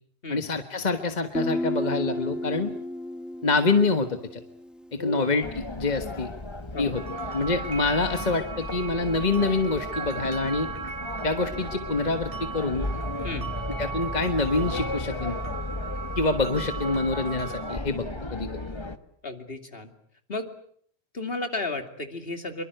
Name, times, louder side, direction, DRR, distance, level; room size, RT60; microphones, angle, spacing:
voice 1, 0.3-2.7 3.4-4.4 4.9-6.3 6.8-7.0 7.3-10.7 11.2-12.9 13.8-15.4 16.2-18.0 18.3-18.5, left 3 dB, 40° left, 7 dB, 1.5 m, -26 dB
Guitar, 1.3-5.0, left 1 dB, ahead, 1.2 m, -32 dB
voice 2, 5.0-5.3 6.7-6.9 13.2-13.5 19.2-19.9 20.3-20.5 21.1-22.6, left 2 dB, 60° left, 6 dB, 2.9 m, -33 dB
sound 1, 5.4-19.0, left 2 dB, 25° left, 1.4 m, -35 dB
sound 2, 6.9-17.8, right 5 dB, 55° right, 3.7 m, -38 dB
26.0 x 23.5 x 7.9 m, 0.62 s
omnidirectional pair, 1.1 m